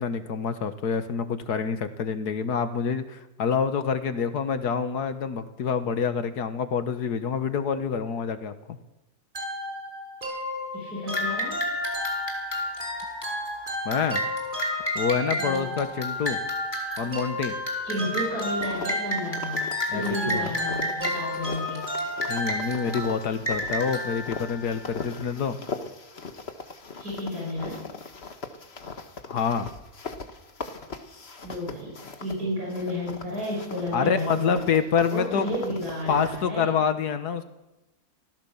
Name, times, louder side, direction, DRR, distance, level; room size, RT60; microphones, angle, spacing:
voice 1, 0.0-8.8 13.8-14.2 14.9-16.4 17.0-17.6 19.9-20.5 22.3-25.6 29.3-29.7 33.9-35.5 36.1-37.4, left 6 dB, 85° left, 10 dB, 1.8 m, -27 dB
sound 1, 9.3-23.2, left 1 dB, 30° right, 5.7 m, -34 dB
voice 2, 10.7-11.5 15.4-15.7 17.8-19.6 19.9-21.8 27.0-27.8 31.4-34.5 35.0-36.8, left 1 dB, 70° right, -4 dB, 6.7 m, -32 dB
sound 2, 11.1-25.3, left 1 dB, 15° left, 3.7 m, -32 dB
sound 3, 18.4-32.4 32.7-36.5, left 4 dB, 40° left, 1.7 m, -40 dB
26.0 x 15.5 x 7.2 m, 1.0 s
omnidirectional pair, 1.7 m